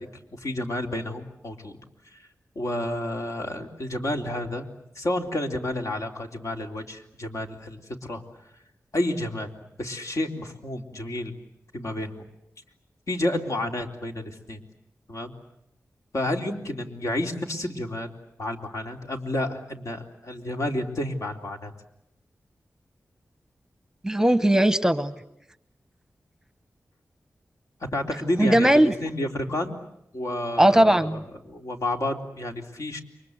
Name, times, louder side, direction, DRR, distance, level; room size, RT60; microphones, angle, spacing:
voice 1, 0.0-1.7 2.1-2.3 2.6-4.7 5.0-8.2 8.9-9.5 9.8-11.3 11.7-12.1 13.1-14.6 15.1-15.3 16.1-18.1 18.4-21.7 27.9-29.8 30.1-33.0, left 1 dB, 60° left, 3 dB, 3.5 m, -30 dB
voice 2, 24.0-25.1 28.4-28.9 30.6-31.2, right 1 dB, 10° right, 13 dB, 1.0 m, -18 dB
29.0 x 24.0 x 8.1 m, 0.79 s
wide cardioid pair, 90°, 6 cm